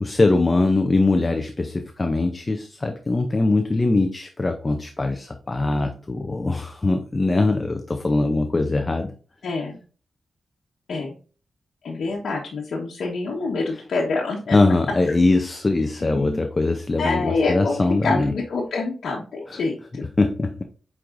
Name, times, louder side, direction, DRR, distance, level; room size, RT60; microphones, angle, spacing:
voice 1, 0.0-9.1 14.5-18.3 19.5-19.6 20.2-20.6, left 2 dB, 20° left, 6 dB, 0.6 m, -21 dB
voice 2, 9.4-9.8 10.9-11.2 11.8-14.6 16.0-16.4 17.0-17.8 18.0-20.1, left 3 dB, 70° left, -3 dB, 1.2 m, -26 dB
8.6 x 4.6 x 2.6 m, 0.39 s
wide cardioid pair, 150°, 0 cm